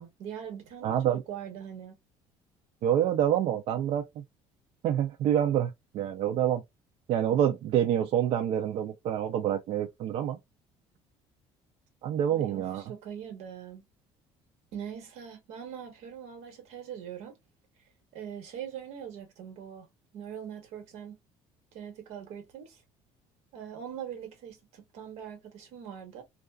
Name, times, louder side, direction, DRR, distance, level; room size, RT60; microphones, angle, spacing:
voice 1, 0.0-1.9 12.3-13.8 14.7-17.4 18.1-19.9 20.1-21.2 21.7-22.8 23.5-26.2, right 8 dB, 75° right, 1.1 m, -42 dB
voice 2, 0.8-1.2 2.8-4.2 4.8-6.6 7.1-10.4 12.0-12.8, right 10 dB, 55° right, 0.4 m, -27 dB
2.3 x 2.3 x 2.3 m
cardioid pair, 145°, 11 cm